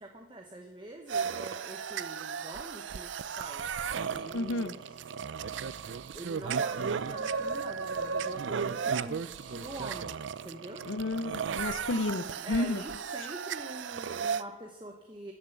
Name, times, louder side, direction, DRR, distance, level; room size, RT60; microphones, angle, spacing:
voice 1, 0.0-3.7 4.1-5.0 6.1-10.9 12.3-15.3, right 1 dB, 25° right, 2 dB, 1.1 m, -45 dB
sound 1, 1.1-14.4, right 6 dB, 75° right, 0.5 m, -35 dB
voice 2, 4.3-4.7 10.9-12.8, left 2 dB, 85° left, 14 dB, 0.7 m, -31 dB
17.5 x 6.6 x 7.3 m, 1.1 s
head